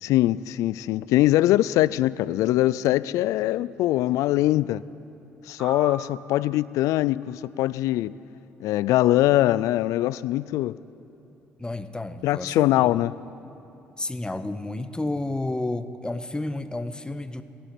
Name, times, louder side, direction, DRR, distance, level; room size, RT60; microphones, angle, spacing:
voice 1, 0.0-4.8 5.5-8.2 8.6-10.8 12.2-13.1, left 15 dB, 70° left, 19 dB, 0.3 m, -22 dB
sound 1, 5.6-8.3, right 2 dB, 10° right, 4.2 m, -44 dB
voice 2, 11.6-13.0 14.0-17.4, left 2 dB, 15° left, 11 dB, 1.0 m, -31 dB
15.5 x 8.9 x 9.4 m, 2.8 s
hypercardioid pair, 50°, 6 cm